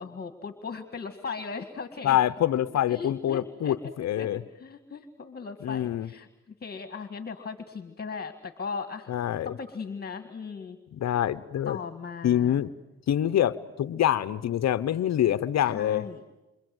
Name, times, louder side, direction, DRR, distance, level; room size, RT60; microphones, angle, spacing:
voice 1, 0.0-2.2 2.9-3.8 4.2-4.3 4.6-9.1 9.4-10.8 11.7-12.6 15.6-16.2, left 5 dB, 30° left, 8 dB, 2.0 m, -38 dB
voice 2, 2.0-4.4 5.6-6.1 9.1-9.5 10.9-11.8 12.2-12.7 13.1-16.1, left 11 dB, 60° left, 14 dB, 0.9 m, -25 dB
28.0 x 25.0 x 7.9 m, 1.0 s
cardioid pair, 90°, 30 cm